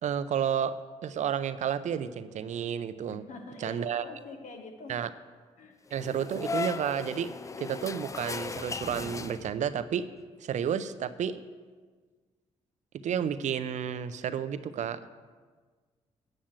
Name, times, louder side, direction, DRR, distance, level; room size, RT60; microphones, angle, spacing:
voice 1, 0.0-0.8 1.0-3.2 3.6-4.0 4.9-5.1 5.9-10.0 10.4-11.4 13.0-15.0, right 8 dB, 70° right, 12 dB, 0.5 m, -31 dB
voice 2, 3.1-5.0 5.6-5.8, left 3 dB, 75° left, 4 dB, 1.4 m, -45 dB
sound 1, 5.9-9.8, left 4 dB, 25° left, 0.3 m, -37 dB
8.8 x 6.3 x 7.4 m, 1.5 s
cardioid pair, 80°, 13 cm